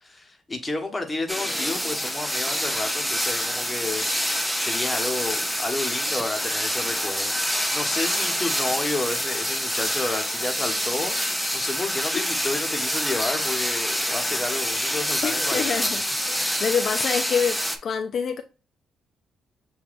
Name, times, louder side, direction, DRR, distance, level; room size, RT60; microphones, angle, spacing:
voice 1, 0.0-16.0, left 2 dB, 20° left, 1.2 m, -31 dB
sound 1, 1.3-17.8, equal, ahead, 0.7 m, -26 dB
voice 2, 15.2-16.0 16.6-18.4, left 6 dB, 55° left, 0.4 m, -26 dB
7.0 x 2.7 x 2.6 m
cardioid pair, 90°, 0 cm